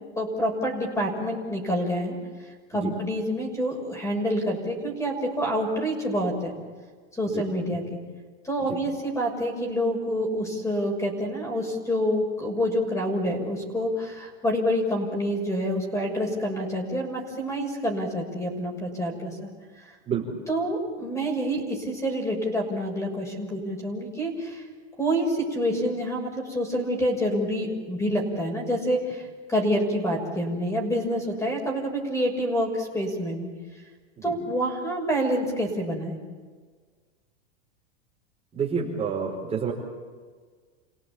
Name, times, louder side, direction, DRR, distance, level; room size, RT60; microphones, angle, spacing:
voice 1, 0.1-2.2 2.7-6.5 7.1-7.8 8.4-19.5 20.5-24.6 25.0-33.5 34.2-36.1, equal, 10° left, 2 dB, 6.5 m, -27 dB
voice 2, 38.5-39.7, right 6 dB, 20° right, -3 dB, 4.8 m, -29 dB
29.0 x 17.5 x 8.8 m, 1.5 s
supercardioid pair, 135°, 33 cm